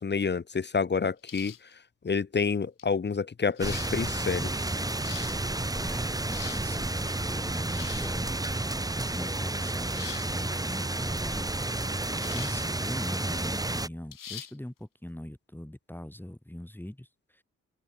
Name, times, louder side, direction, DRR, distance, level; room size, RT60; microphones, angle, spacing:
voice 1, 0.0-1.5 2.0-4.7, left 5 dB, 35° left, 0.9 m, -28 dB
sound 1, 1.2-1.7 2.8-2.9 3.6-3.9 4.8-5.4 6.1-6.7 7.6-8.2 9.9-10.3 12.2-12.6 13.0-13.1 14.1-14.5, left 9 dB, 90° left, 5.3 m, -43 dB
sound 2, 3.6-13.9, right 2 dB, 10° right, 1.0 m, -31 dB
voice 2, 5.8-8.5 9.0-11.5 11.8-17.4, left 1 dB, 5° left, 2.6 m, -42 dB
open air
cardioid pair, 85°, 31 cm